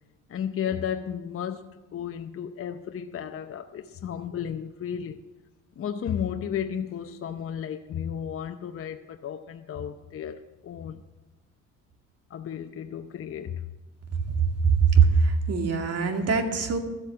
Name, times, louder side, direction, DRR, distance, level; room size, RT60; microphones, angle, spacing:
voice 1, 0.3-5.2 5.8-11.0 12.3-13.6, left 8 dB, 45° left, 0.7 m, -33 dB
voice 2, 14.9-16.8, right 5 dB, 55° right, 2.2 m, -22 dB
13.5 x 8.2 x 7.7 m
cardioid pair, 90°, 30 cm